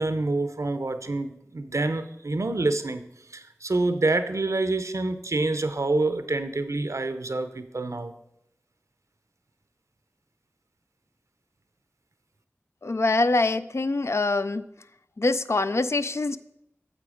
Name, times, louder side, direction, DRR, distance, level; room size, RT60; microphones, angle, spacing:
voice 1, 0.0-3.0 3.3-8.1, right 2 dB, 70° right, 10 dB, 0.7 m, -27 dB
voice 2, 12.8-14.6 15.2-16.4, left 2 dB, 55° left, 12 dB, 0.4 m, -24 dB
8.9 x 7.0 x 5.0 m, 0.84 s
wide cardioid pair, 50°, 5 cm